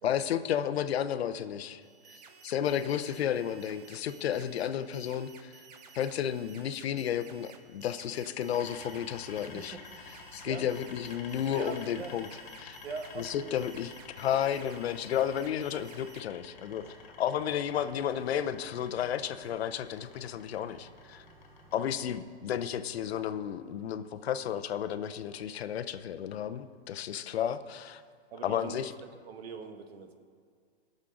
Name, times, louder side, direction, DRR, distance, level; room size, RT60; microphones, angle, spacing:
voice 1, 0.0-1.8 2.1-5.6 5.9-9.8 10.3-12.3 12.6-12.8 13.2-16.9 17.2-21.2 21.7-28.0 28.4-28.9, left 9 dB, 75° left, 11 dB, 0.7 m, -32 dB
sound 1, 1.8-16.2, right 6 dB, 40° right, 0.8 m, -54 dB
sound 2, 8.5-21.8, left 4 dB, 45° left, 1.8 m, -51 dB
voice 2, 10.2-10.7 11.5-12.2 12.8-13.7 21.7-21.9 28.3-28.9 29.2-30.2, right 5 dB, 70° right, 6 dB, 1.3 m, -42 dB
sound 3, 16.7-22.2, equal, 10° right, 0.7 m, -58 dB
17.5 x 6.4 x 3.8 m, 2.1 s
hypercardioid pair, 170°, 32 cm